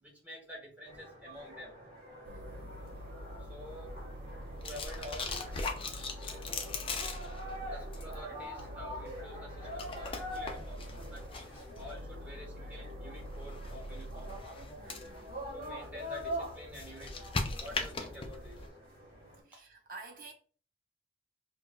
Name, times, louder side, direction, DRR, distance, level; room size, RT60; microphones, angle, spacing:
voice 1, 0.0-1.7 3.4-3.9 4.6-6.1 7.7-10.8 11.1-14.3 15.5-17.3 17.6-18.6 19.5-19.6, left 1 dB, 10° right, 0.8 m, -49 dB
sound 1, 0.8-19.4, equal, 30° right, 1.3 m, -45 dB
voice 2, 2.2-3.2 14.7-15.4 17.9-18.2 19.4-20.3, right 3 dB, 45° right, 0.7 m, -52 dB
sound 2, 2.3-18.7, left 3 dB, 25° left, 0.3 m, -42 dB
sound 3, 2.3-5.1 5.4-8.2 8.6-11.3 11.8-14.4, equal, 80° right, 0.4 m, -46 dB
4.5 x 2.3 x 2.2 m
head